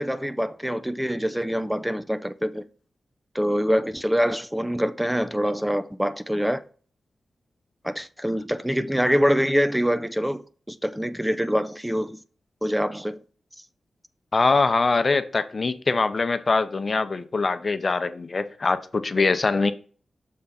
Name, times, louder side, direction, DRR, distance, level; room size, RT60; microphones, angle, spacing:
voice 1, 0.0-2.6 3.3-6.6 7.8-10.4 10.7-12.2 12.6-13.2, equal, 5° right, 0.6 m, -25 dB
voice 2, 14.3-19.7, left 3 dB, 50° left, 0.7 m, -23 dB
6.5 x 3.5 x 5.7 m
supercardioid pair, 40°, 0 cm